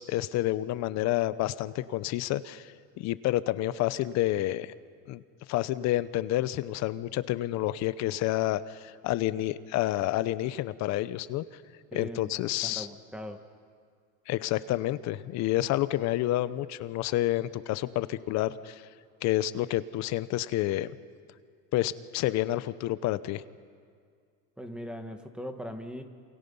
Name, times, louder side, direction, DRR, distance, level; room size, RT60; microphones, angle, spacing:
voice 1, 0.0-4.7 5.1-5.2 5.5-11.4 11.9-12.9 14.3-18.8 19.2-20.9 21.7-23.4, left 15 dB, 45° left, 15 dB, 0.8 m, -29 dB
voice 2, 11.9-12.3 12.6-13.4 24.6-26.0, equal, 5° right, 6 dB, 1.5 m, -39 dB
28.5 x 28.0 x 5.5 m, 2.1 s
supercardioid pair, 135°, 37 cm